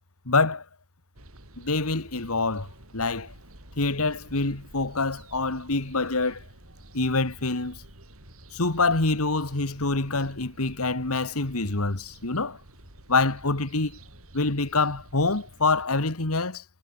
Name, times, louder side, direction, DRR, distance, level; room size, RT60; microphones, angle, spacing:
voice 1, 0.3-0.6 1.6-3.3 3.8-6.4 6.9-7.8 8.5-12.6 13.1-14.0 14.3-16.6, left 3 dB, 85° left, 2.3 m, -26 dB
sound 1, 1.1-15.9, right 1 dB, 70° right, 6.4 m, -50 dB
head